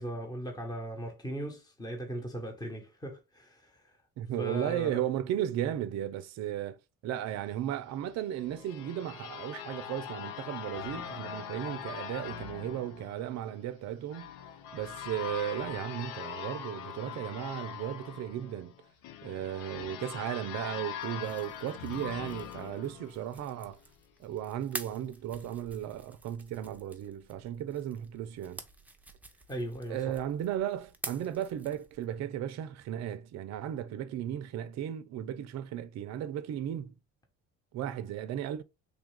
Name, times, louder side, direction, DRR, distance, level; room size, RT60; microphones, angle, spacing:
voice 1, 0.0-4.0 4.4-5.0 29.5-30.2, right 1 dB, 10° left, 1.2 m, -38 dB
voice 2, 4.2-6.8 7.0-14.3 14.7-18.7 19.2-23.8 24.2-28.6 29.9-36.9 37.7-38.6, right 11 dB, 55° right, 0.5 m, -35 dB
sound 1, 8.1-23.7, left 9 dB, 75° left, 0.6 m, -42 dB
sound 2, 21.0-32.2, right 2 dB, 5° right, 0.7 m, -48 dB
3.4 x 2.3 x 3.6 m
supercardioid pair, 70°, 33 cm